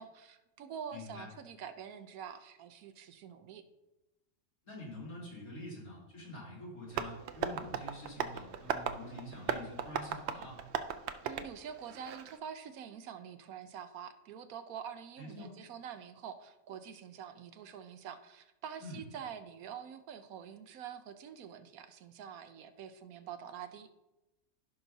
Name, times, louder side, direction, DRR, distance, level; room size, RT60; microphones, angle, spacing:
voice 1, 0.0-3.6 11.2-23.9, right 8 dB, 80° right, 10 dB, 1.1 m, -46 dB
voice 2, 0.9-1.3 4.6-10.6 15.2-15.5 18.8-19.0, left 1 dB, 75° left, -6 dB, 3.4 m, -46 dB
Tap, 6.9-12.4, right 7 dB, 65° right, 0.7 m, -38 dB
15.0 x 5.8 x 2.7 m, 0.99 s
omnidirectional pair, 1.5 m